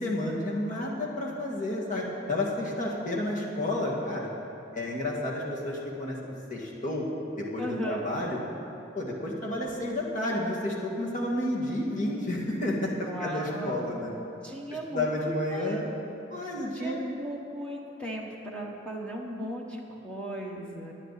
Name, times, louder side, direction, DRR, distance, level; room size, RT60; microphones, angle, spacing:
voice 1, 0.0-4.3 4.7-7.1 7.4-8.4 8.9-14.1 14.9-15.9 16.3-17.0, left 1 dB, 40° left, -3 dB, 2.1 m, -31 dB
voice 2, 7.6-8.0 13.0-14.0 14.4-15.1 15.5-15.8 16.7-20.9, right 1 dB, 5° left, -2 dB, 1.4 m, -37 dB
19.5 x 10.0 x 4.2 m, 2.8 s
head